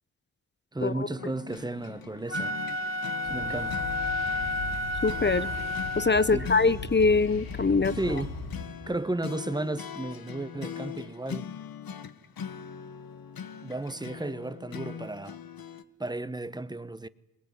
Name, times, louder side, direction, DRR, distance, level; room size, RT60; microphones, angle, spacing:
voice 1, 0.7-2.6 3.2-3.8 6.3-6.5 7.9-8.4 8.9-11.5 13.6-15.4 16.0-17.1, right 2 dB, 10° right, 1.1 m, -33 dB
sound 1, 1.2-15.8, left 7 dB, 70° left, 1.6 m, -42 dB
Wind instrument woodwind instrument, 2.2-6.6, left 1 dB, 45° left, 2.2 m, -32 dB
sound 2, 3.2-8.6, left 3 dB, 90° left, 7.6 m, -38 dB
voice 2, 5.0-5.5 6.0-7.9, left 4 dB, 30° left, 0.9 m, -23 dB
22.5 x 20.5 x 9.7 m
cardioid pair, 60°, 37 cm